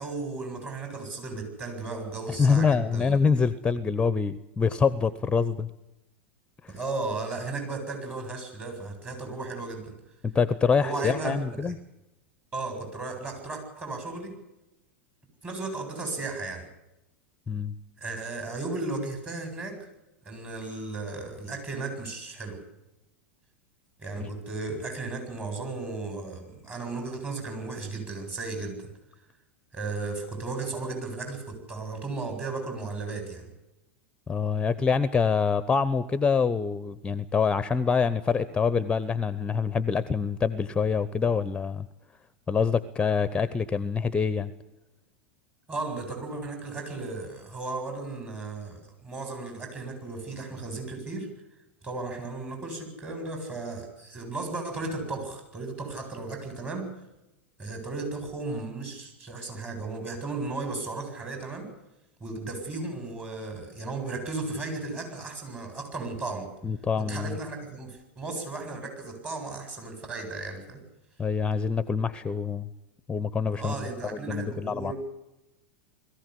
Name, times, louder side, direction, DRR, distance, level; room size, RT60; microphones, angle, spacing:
voice 1, 0.0-3.2 6.7-9.9 10.8-11.7 12.5-14.3 15.4-16.7 18.0-19.9 20.2-22.6 24.0-28.9 29.7-33.5 45.7-51.3 51.8-56.9 57.6-61.7 62.2-66.5 67.0-70.8 73.4-74.9, right 3 dB, 25° right, 4 dB, 8.0 m, -35 dB
voice 2, 2.4-5.7 10.2-11.7 17.5-17.7 24.2-24.3 34.3-41.9 42.5-44.5 66.6-67.4 71.2-72.7 73.1-74.9, left 5 dB, 15° left, 15 dB, 0.9 m, -25 dB
21.0 x 15.0 x 9.9 m, 0.94 s
hypercardioid pair, 90°, 7 cm